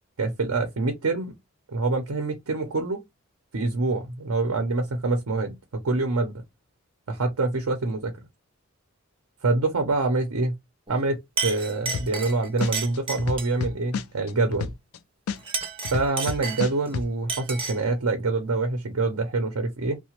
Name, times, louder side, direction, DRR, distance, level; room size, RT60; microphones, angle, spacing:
voice 1, 0.2-1.3 1.7-3.0 3.5-6.4 7.1-8.1 9.4-10.6 10.9-11.2 11.4-14.7 15.9-20.0, right 3 dB, 85° right, 0.6 m, -26 dB
Chink clink, 10.9-11.1 11.4-13.6 15.4-16.9 17.3-17.9, right 4 dB, 25° right, 0.5 m, -32 dB
sound 1, 11.9-12.3 12.6-15.0 15.3-17.1, left 5 dB, 75° left, 0.3 m, -30 dB
2.9 x 2.0 x 2.9 m
head